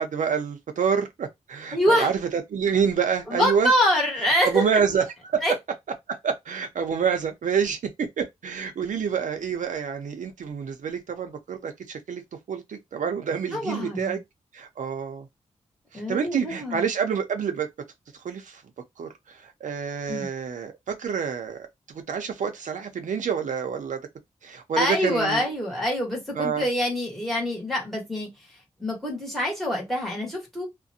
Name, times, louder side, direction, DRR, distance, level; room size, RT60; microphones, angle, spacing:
voice 1, 0.0-3.7 4.4-5.4 6.1-12.2 12.5-14.2 14.5-15.3 16.1-17.7 18.2-18.6 19.0-21.6 22.1-24.0 24.4-25.4 26.3-26.7, right 7 dB, 90° right, 0.6 m, -27 dB
voice 2, 1.7-2.1 3.3-4.6 5.4-5.5 13.5-14.2 15.9-16.9 20.1-20.3 24.8-28.3 28.8-30.7, equal, ahead, 1.2 m, -25 dB
2.4 x 2.1 x 2.6 m
wide cardioid pair, 145°, 13 cm